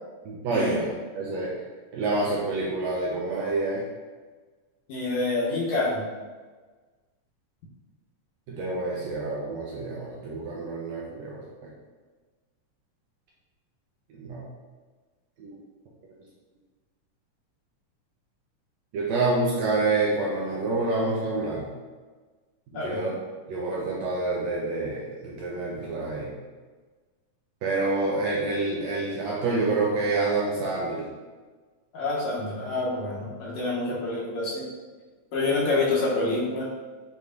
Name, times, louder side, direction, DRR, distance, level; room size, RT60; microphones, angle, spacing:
voice 1, 0.2-0.9 1.1-1.5 1.9-3.8 8.5-11.4 14.1-14.4 15.4-15.5 18.9-21.7 22.7-23.1 23.5-26.3 27.6-31.1, right 3 dB, 80° right, -4 dB, 1.6 m, -27 dB
voice 2, 4.9-6.0 22.7-23.1 31.9-34.6 35.3-36.7, left 2 dB, 75° left, -5 dB, 1.9 m, -27 dB
6.8 x 3.0 x 2.5 m, 1.4 s
omnidirectional pair, 3.5 m